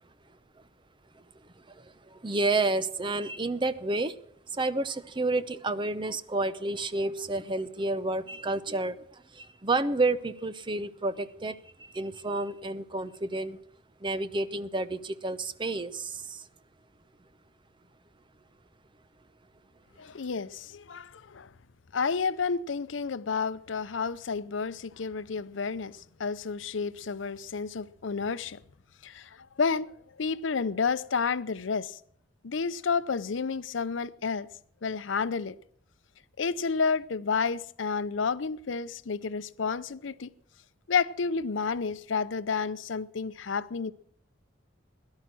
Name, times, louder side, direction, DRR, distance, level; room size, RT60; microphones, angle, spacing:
voice 1, 1.7-4.1 4.5-13.6 14.0-16.4, right 2 dB, 25° right, 0.7 m, -30 dB
voice 2, 20.0-21.5 21.9-28.6 29.0-32.0 32.4-34.5 34.8-35.6 36.4-40.3 40.9-43.9, left 5 dB, 85° left, 0.6 m, -30 dB
17.5 x 11.5 x 6.2 m
head